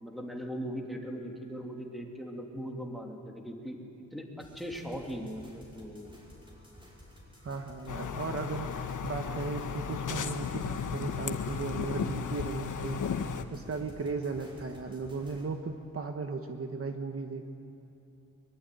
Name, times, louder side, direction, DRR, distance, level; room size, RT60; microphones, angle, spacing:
voice 1, 0.0-3.8 4.1-6.1, equal, ahead, 1 dB, 3.0 m, -39 dB
sound 1, 4.4-15.4, left 1 dB, 15° right, 5.9 m, -53 dB
voice 2, 7.4-13.0 13.5-17.5, right 4 dB, 45° right, 5 dB, 1.3 m, -36 dB
sound 2, 7.9-13.4, left 7 dB, 75° left, 1.3 m, -35 dB
23.5 x 22.5 x 9.4 m, 2.9 s
wide cardioid pair, 135°, 31 cm